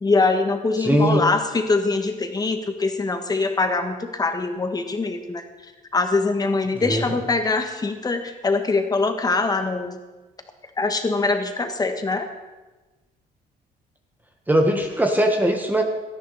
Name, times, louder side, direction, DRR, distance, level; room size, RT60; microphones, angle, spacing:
voice 1, 0.0-5.4 5.9-10.0 10.8-12.3, left 3 dB, 20° left, 6 dB, 1.7 m, -23 dB
voice 2, 0.8-1.2 6.8-7.2 14.5-15.8, right 1 dB, 10° right, 3 dB, 1.6 m, -20 dB
17.5 x 13.0 x 4.3 m, 1.2 s
cardioid pair, 110°, 17 cm